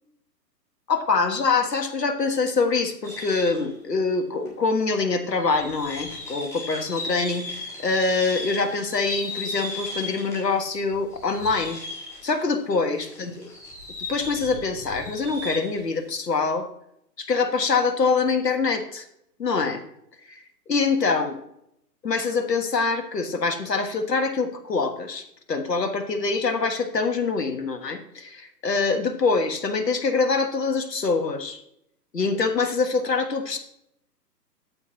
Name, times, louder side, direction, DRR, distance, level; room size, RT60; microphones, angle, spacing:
voice 1, 0.9-11.8 12.2-13.5 14.1-16.7 17.2-19.1 19.4-19.8 20.3-20.4 20.7-21.4 22.0-31.6 32.1-33.6, left 4 dB, 70° left, 6 dB, 1.5 m, -24 dB
sound 1, 3.0-3.7 4.5-4.6 5.2-10.5 10.9-12.5 12.9-15.8, left 2 dB, 5° left, 1.7 m, -36 dB
8.7 x 8.7 x 2.8 m, 0.76 s
figure-of-eight pair, 135°, 50 cm